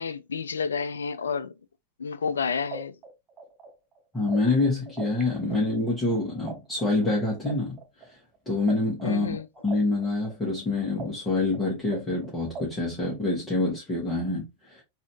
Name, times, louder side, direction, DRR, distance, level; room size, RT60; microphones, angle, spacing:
voice 1, 0.0-1.5 2.0-2.9 9.0-9.5, left 5 dB, 70° left, 0.4 m, -30 dB
sound 1, 2.3-2.4 2.7-5.2 5.5-8.7 9.0-12.9, right 5 dB, 25° right, 0.9 m, -41 dB
voice 2, 4.1-7.8 8.4-9.4 9.6-14.8, left 2 dB, 15° left, 1.7 m, -26 dB
4.0 x 2.8 x 2.9 m
figure-of-eight pair, 90°, 0 cm